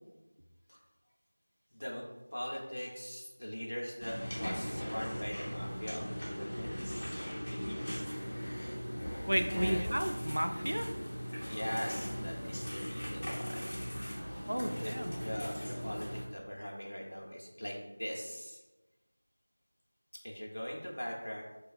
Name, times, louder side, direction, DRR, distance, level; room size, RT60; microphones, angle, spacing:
voice 1, 1.7-2.0 2.3-7.1 7.5-8.0 9.5-10.0 11.5-13.8 14.8-14.9 15.2-18.6 20.2-21.4, equal, 85° left, -2 dB, 0.5 m, -41 dB
sound 1, 4.0-16.2, equal, 25° left, 0.6 m, -39 dB
voice 2, 9.3-10.9 14.5-15.1, equal, 90° right, 6 dB, 0.3 m, -33 dB
2.6 x 2.2 x 2.3 m, 1.1 s
figure-of-eight pair, 180°, 0 cm